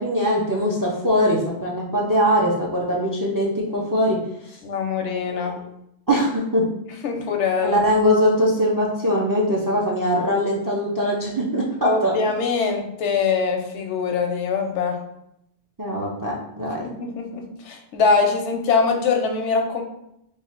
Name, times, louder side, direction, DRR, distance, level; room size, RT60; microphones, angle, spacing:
voice 1, 0.0-4.2 5.3-5.6 6.1-6.7 7.6-12.1 15.8-16.9, equal, 35° right, -2 dB, 0.3 m, -21 dB
voice 2, 4.6-5.5 7.0-7.8 11.8-15.0 16.8-19.8, left 5 dB, 85° left, 4 dB, 0.9 m, -23 dB
3.1 x 2.3 x 4.3 m, 0.79 s
omnidirectional pair, 1.2 m